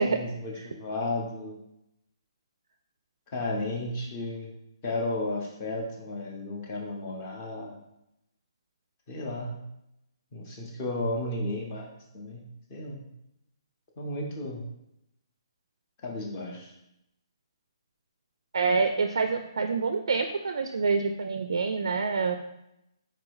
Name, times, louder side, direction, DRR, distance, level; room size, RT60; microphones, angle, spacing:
voice 1, 0.0-1.6 3.3-4.5 4.8-7.8 9.1-9.6 10.3-12.4 12.7-13.0 14.0-14.6 16.0-16.7, left 2 dB, 20° left, 0 dB, 0.6 m, -33 dB
voice 2, 18.5-22.3, right 4 dB, 65° right, 6 dB, 0.3 m, -26 dB
4.2 x 2.6 x 4.6 m, 0.84 s
hypercardioid pair, 180°, 3 cm